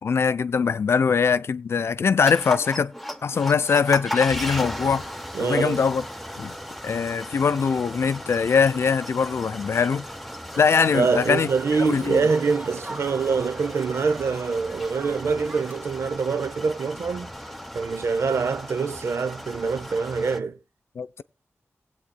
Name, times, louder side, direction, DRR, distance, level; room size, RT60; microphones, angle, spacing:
voice 1, 0.0-2.9 3.2-5.0 5.4-6.0 6.4-6.6 6.8-10.1 10.6-11.5 11.8-12.2 21.0-21.2, left 6 dB, 65° left, 0.5 m, -22 dB
sound 1, 2.3-20.4, equal, ahead, 0.7 m, -36 dB
voice 2, 5.3-5.8 10.9-17.3 17.7-20.6, right 5 dB, 75° right, 0.6 m, -25 dB
Crowd, 10.5-15.8, right 2 dB, 40° right, 1.3 m, -41 dB
18.0 x 8.5 x 2.2 m
wide cardioid pair, 105°, 5 cm